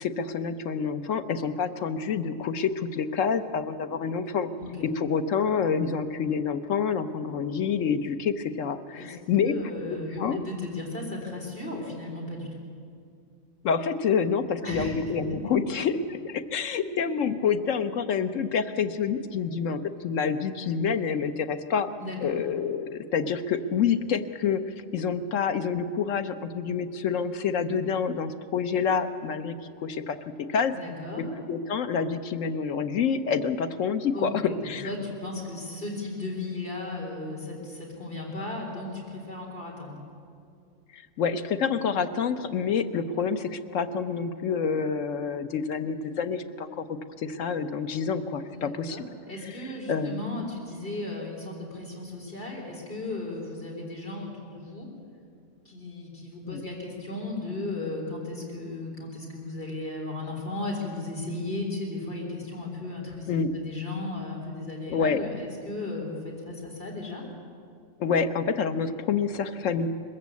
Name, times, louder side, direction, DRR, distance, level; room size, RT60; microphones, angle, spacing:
voice 1, 0.0-4.5 4.8-9.6 10.2-10.4 13.6-21.9 22.2-24.6 24.9-29.6 29.8-30.2 30.5-30.7 31.2-34.3 34.6-34.9 40.9-46.9 47.2-49.0 49.9-50.4 56.5-56.6 63.3-63.5 64.9-65.2 68.0-69.9, left 6 dB, 90° left, 9 dB, 1.3 m, -27 dB
voice 2, 9.4-12.6 14.6-15.1 22.0-22.4 30.7-31.3 34.1-40.0 48.5-54.9 55.6-67.2, left 2 dB, 45° left, -2 dB, 4.2 m, -35 dB
21.5 x 14.5 x 8.4 m, 2.3 s
omnidirectional pair, 1.3 m